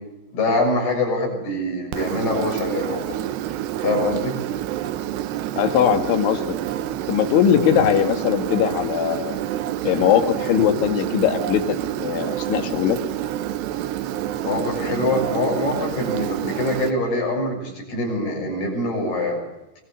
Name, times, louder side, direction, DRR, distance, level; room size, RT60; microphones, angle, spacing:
voice 1, 0.3-3.2 3.8-4.4 14.4-19.4, left 2 dB, 55° left, 1 dB, 8.4 m, -24 dB
Engine, 1.9-16.9, right 12 dB, 75° right, 3.0 m, -28 dB
voice 2, 5.6-6.6 7.1-9.4 9.8-13.0, left 9 dB, 80° left, 8 dB, 4.3 m, -20 dB
24.5 x 20.5 x 8.2 m, 0.98 s
omnidirectional pair, 5.4 m